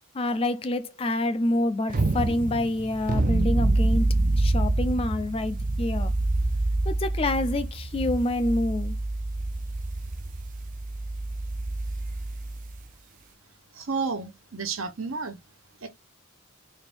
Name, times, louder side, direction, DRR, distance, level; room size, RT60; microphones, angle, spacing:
voice 1, 0.1-4.1 4.4-6.1 6.9-8.9, left 1 dB, 25° left, 0.3 m, -27 dB
sound 1, 1.9-12.8, right 2 dB, 40° right, 0.4 m, -27 dB
voice 2, 13.7-15.4 15.8-15.9, right 4 dB, 70° right, 0.9 m, -31 dB
4.2 x 2.6 x 3.4 m
head